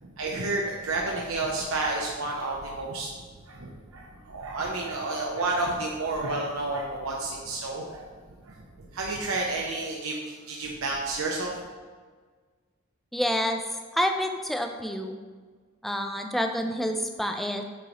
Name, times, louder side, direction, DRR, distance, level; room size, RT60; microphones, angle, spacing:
voice 1, 0.0-8.0 8.5-11.6, right 2 dB, 85° right, -2 dB, 0.7 m, -31 dB
voice 2, 13.1-13.6 13.9-15.2 15.8-17.6, equal, ahead, 4 dB, 0.4 m, -28 dB
8.4 x 3.1 x 4.0 m, 1.5 s
head